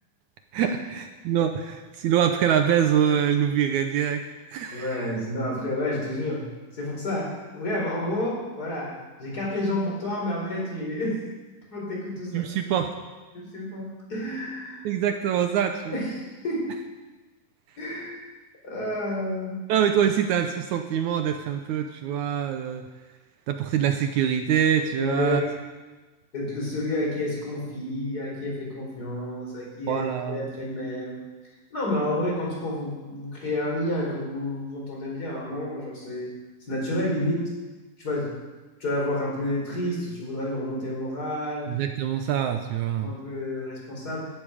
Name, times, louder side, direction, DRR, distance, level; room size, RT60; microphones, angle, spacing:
voice 1, 0.5-4.2 4.5-5.0 12.3-12.9 14.9-15.9 19.7-22.8 23.5-25.4 29.9-30.5 41.7-43.1, right 9 dB, 75° right, 6 dB, 1.8 m, -24 dB
voice 2, 4.7-11.2 11.7-12.5 13.3-14.9 15.9-16.7 17.8-18.2 18.6-19.6 24.9-25.5 26.3-31.3 31.7-36.3 36.7-37.5 38.0-38.3 38.8-41.7 43.0-44.3, left 1 dB, 25° left, -2 dB, 4.3 m, -30 dB
16.0 x 12.5 x 5.0 m, 1.2 s
omnidirectional pair, 4.1 m